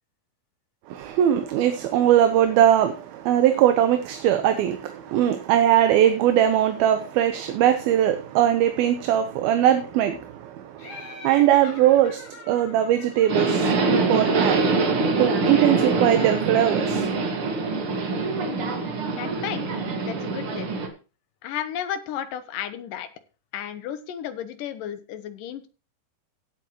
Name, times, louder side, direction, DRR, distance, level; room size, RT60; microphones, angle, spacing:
voice 1, 0.9-14.7 15.2-17.0, right 11 dB, 75° right, 2.8 m, -21 dB
Laughter, 10.8-14.4, left 3 dB, 40° left, 5.3 m, -44 dB
Subway metro underground, 13.3-20.9, right 3 dB, 45° right, 2.2 m, -24 dB
voice 2, 19.1-20.7 21.4-23.1 23.5-25.7, left 10 dB, 70° left, 2.4 m, -33 dB
16.5 x 8.3 x 3.1 m
omnidirectional pair, 4.6 m